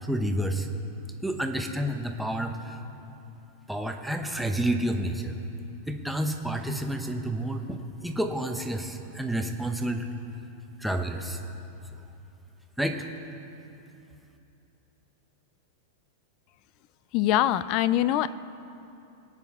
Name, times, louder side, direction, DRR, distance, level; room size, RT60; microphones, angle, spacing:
voice 1, 0.0-0.7 1.2-2.8 3.7-5.4 5.9-10.1 10.8-11.4 12.8-13.0, right 1 dB, ahead, 3 dB, 0.8 m, -29 dB
voice 2, 17.1-18.3, left 12 dB, 40° left, 16 dB, 0.4 m, -23 dB
22.5 x 9.0 x 3.6 m, 2.8 s
supercardioid pair, 155°, 0 cm